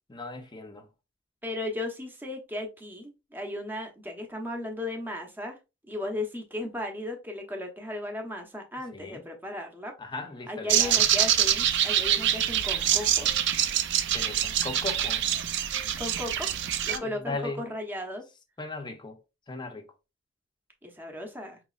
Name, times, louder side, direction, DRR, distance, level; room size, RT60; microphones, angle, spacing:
voice 1, 0.1-0.9 8.9-9.2 10.0-11.0 14.1-15.2 16.9-17.7 18.6-19.2 19.5-19.8, left 3 dB, 25° left, 0.7 m, -37 dB
voice 2, 1.4-5.6 5.9-9.9 10.5-13.3 16.0-16.5 16.8-18.2 20.8-21.6, left 1 dB, 10° right, 0.9 m, -36 dB
sound 1, 10.7-17.0, right 10 dB, 60° right, 0.5 m, -25 dB
5.2 x 3.0 x 2.4 m
head